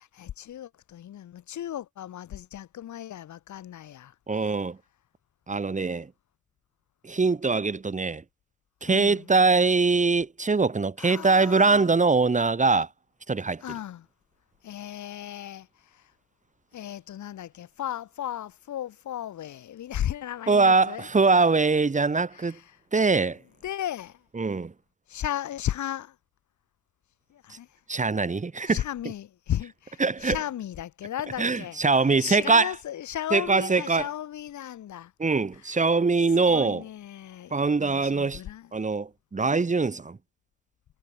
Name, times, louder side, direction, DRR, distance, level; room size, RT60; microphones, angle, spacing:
voice 1, 0.0-4.1 8.8-9.3 11.0-11.9 13.6-14.1 14.6-16.1 16.7-21.1 22.3-22.6 23.6-24.2 25.1-26.1 27.3-27.7 28.7-31.8 32.2-35.1 36.5-38.7, left 11 dB, 70° left, 6.8 m, -35 dB
voice 2, 4.3-4.8 5.5-6.1 7.0-8.2 8.8-12.9 13.3-13.6 20.5-22.6 22.9-23.4 24.4-24.7 27.9-28.8 30.0-30.4 31.4-32.7 33.3-34.1 35.2-36.8 37.5-38.4 38.7-40.2, right 4 dB, 25° right, 2.0 m, -23 dB
cardioid pair, 90°, 30 cm